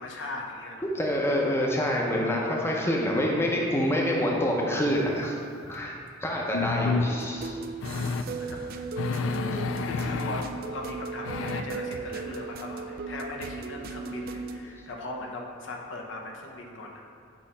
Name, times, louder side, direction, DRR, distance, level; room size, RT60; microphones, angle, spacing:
voice 1, 0.0-0.9 8.4-8.7 9.2-9.4 9.8-17.0, left 2 dB, 75° left, 0 dB, 0.7 m, -39 dB
voice 2, 0.8-5.4 5.6-7.6, equal, 15° left, -2 dB, 0.6 m, -27 dB
sound 1, 5.7-5.8 6.5-7.1 7.8-8.3 9.0-10.4 11.2-11.6, left 4 dB, 90° left, 0.3 m, -29 dB
sound 2, 7.2-14.6, right 4 dB, 50° right, 0.3 m, -37 dB
6.3 x 2.9 x 5.3 m, 2.3 s
head